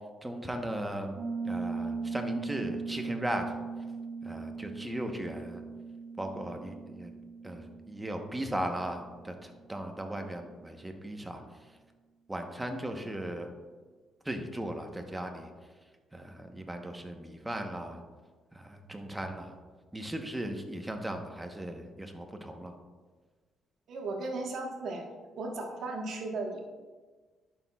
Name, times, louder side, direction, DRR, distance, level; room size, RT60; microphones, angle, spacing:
voice 1, 0.2-1.2 1.4-3.6 4.2-5.6 6.2-7.1 7.4-11.4 12.3-13.5 14.2-15.5 16.1-18.0 18.5-19.5 19.9-22.7, right 1 dB, 10° right, 4 dB, 0.9 m, -37 dB
Piano, 1.2-9.7, right 4 dB, 40° right, 1.2 m, -39 dB
voice 2, 23.9-25.0 25.4-26.6, right 2 dB, 70° right, 1 dB, 1.3 m, -36 dB
11.5 x 6.2 x 2.3 m, 1.4 s
cardioid pair, 90°, 0 cm